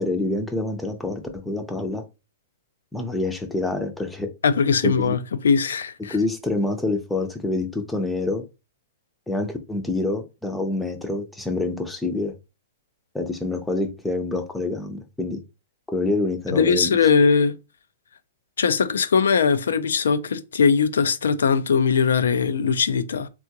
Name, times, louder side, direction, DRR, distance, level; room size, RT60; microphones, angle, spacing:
voice 1, 0.0-2.0 2.9-4.3 4.8-5.2 6.1-8.4 9.3-12.3 13.1-15.4 15.9-17.0, left 2 dB, 5° left, 0.5 m, -26 dB
voice 2, 4.4-6.2 16.5-17.6 18.6-23.3, left 5 dB, 85° left, 0.4 m, -20 dB
3.7 x 2.3 x 2.8 m
hypercardioid pair, 135°, 0 cm